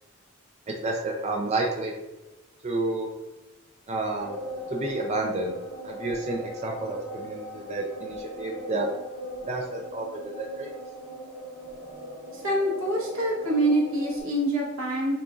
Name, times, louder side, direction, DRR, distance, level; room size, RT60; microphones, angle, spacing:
voice 1, 0.7-1.9 2.6-3.1 3.9-4.4 4.7-5.6 5.8-8.9 9.4-10.7, right 2 dB, 35° right, 1 dB, 0.4 m, -30 dB
sound 1, 4.2-14.2, equal, 80° left, 1.2 m, -39 dB
voice 2, 12.3-15.1, right 1 dB, 85° right, -2 dB, 1.2 m, -25 dB
6.7 x 2.5 x 2.4 m, 1.1 s
head